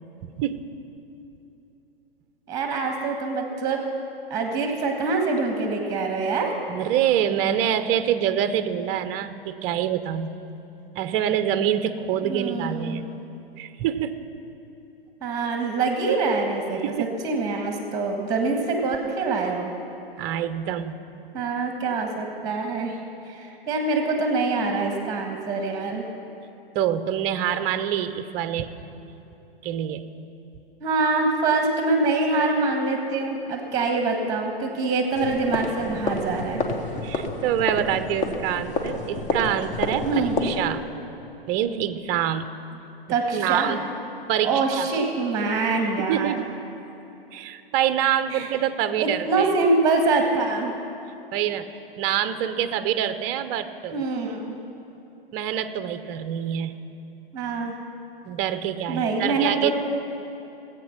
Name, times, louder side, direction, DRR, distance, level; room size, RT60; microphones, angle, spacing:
voice 1, 0.2-0.7 6.7-10.3 10.9-13.1 13.6-14.1 16.8-17.2 20.2-21.0 26.7-28.8 29.6-30.1 36.6-36.8 37.0-40.8 41.5-42.5 43.3-43.8 44.3-44.9 46.0-46.5 47.3-49.5 51.3-51.7 52.0-54.0 55.3-56.7 58.2-59.7, right 10 dB, 30° right, 11 dB, 0.6 m, -26 dB
voice 2, 2.5-3.8 4.3-6.5 12.2-13.0 15.2-19.7 21.3-23.0 23.2-26.0 30.8-36.6 40.0-40.5 43.1-43.8 44.4-46.4 48.3-48.5 49.0-50.8 53.9-54.5 57.3-57.7 58.9-59.7, right 3 dB, 10° right, 3 dB, 1.6 m, -25 dB
sound 1, 35.1-40.7, left 2 dB, 25° left, 1.2 m, -29 dB
19.0 x 8.2 x 5.8 m, 2.9 s
hypercardioid pair, 115°, 30 cm